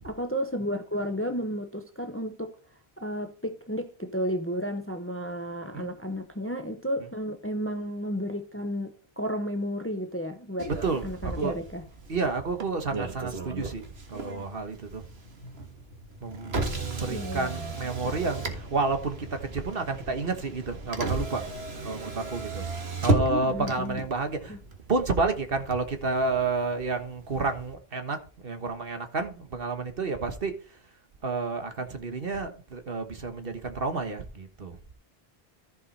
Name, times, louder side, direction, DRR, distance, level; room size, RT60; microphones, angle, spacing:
voice 1, 0.0-2.5 3.0-10.7 11.0-11.9 17.1-17.7 23.3-24.0 24.5-24.6, equal, 15° left, 0.8 m, -32 dB
Motor vehicle (road), 10.6-27.7, right 2 dB, 80° right, 1.9 m, -35 dB
voice 2, 10.8-11.6 12.1-15.0 16.2-21.5 21.8-22.7 23.0-24.6 24.9-30.8 31.2-34.8, right 3 dB, 65° right, 1.5 m, -30 dB
14.5 x 5.4 x 4.2 m
omnidirectional pair, 1.0 m